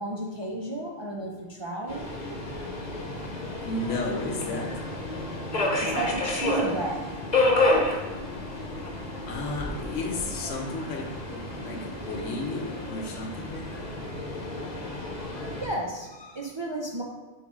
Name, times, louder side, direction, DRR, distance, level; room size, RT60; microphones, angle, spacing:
voice 1, 0.0-2.1 5.8-7.1 15.6-17.0, right 2 dB, 40° right, -2 dB, 0.4 m, -33 dB
Subway metro underground, 1.9-15.6, left 2 dB, 40° left, 1.0 m, -30 dB
voice 2, 3.6-4.8 9.3-14.0, left 2 dB, 85° left, 3 dB, 1.2 m, -33 dB
6.5 x 3.2 x 4.5 m, 1.3 s
omnidirectional pair, 1.2 m